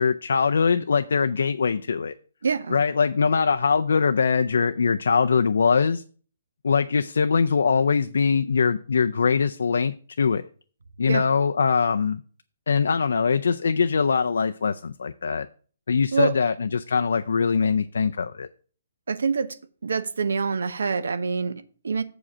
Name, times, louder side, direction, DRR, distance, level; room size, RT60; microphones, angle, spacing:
voice 1, 0.0-2.2 2.7-6.0 6.6-10.5 11.0-12.2 12.7-15.5 15.9-18.5, left 5 dB, 80° left, 9 dB, 0.4 m, -22 dB
voice 2, 2.4-2.8 11.1-11.2 16.1-16.3 19.1-19.6 19.8-22.0, right 5 dB, 85° right, 13 dB, 0.8 m, -26 dB
7.1 x 4.9 x 6.2 m, 0.42 s
hypercardioid pair, 170°, 0 cm